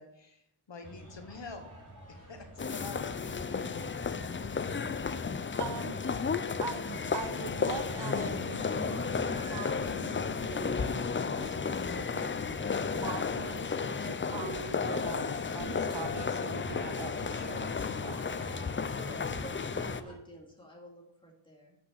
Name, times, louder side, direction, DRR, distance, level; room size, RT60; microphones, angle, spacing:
voice 1, 0.0-1.7 2.1-3.7, left 4 dB, 60° left, 6 dB, 1.2 m, -47 dB
sound 1, 0.8-20.1, right 1 dB, 35° right, 4.1 m, -49 dB
sound 2, 2.6-20.0, left 5 dB, 25° left, 0.3 m, -33 dB
voice 2, 4.5-5.0 5.6-6.0 6.6-12.3 12.8-18.2, right 8 dB, 55° right, 12 dB, 0.5 m, -43 dB
voice 3, 18.8-21.8, equal, 10° left, -2 dB, 2.4 m, -49 dB
8.0 x 6.0 x 6.4 m, 0.78 s
wide cardioid pair, 120°, 50 cm